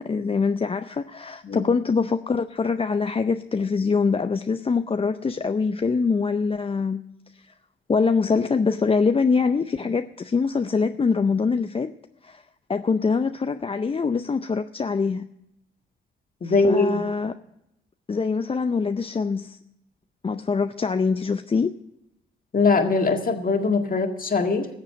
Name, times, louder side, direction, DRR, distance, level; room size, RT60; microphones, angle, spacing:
voice 1, 0.0-7.0 7.3-7.5 7.9-11.9 12.2-12.4 12.7-15.3 16.4-17.3 18.1-19.6 20.2-21.7, left 5 dB, 25° left, 0.5 m, -24 dB
voice 2, 16.4-17.0 22.5-24.7, left 4 dB, 40° left, 1.9 m, -21 dB
14.0 x 7.5 x 8.6 m
supercardioid pair, 60°, 21 cm